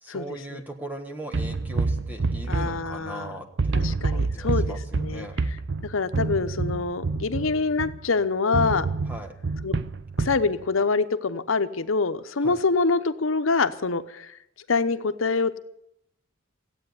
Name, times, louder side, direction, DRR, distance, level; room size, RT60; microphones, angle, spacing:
voice 1, 0.0-5.4 9.1-9.3 12.4-12.6, right 1 dB, 10° right, 4 dB, 1.4 m, -39 dB
sound 1, 1.3-3.3 3.6-8.1 8.5-10.5, right 3 dB, 65° right, 0.6 m, -27 dB
voice 2, 2.5-3.3 3.8-5.3 5.8-8.9 9.6-9.7 10.2-14.3 14.7-15.6, left 4 dB, 80° left, 11 dB, 0.9 m, -25 dB
15.5 x 8.8 x 9.5 m, 0.79 s
head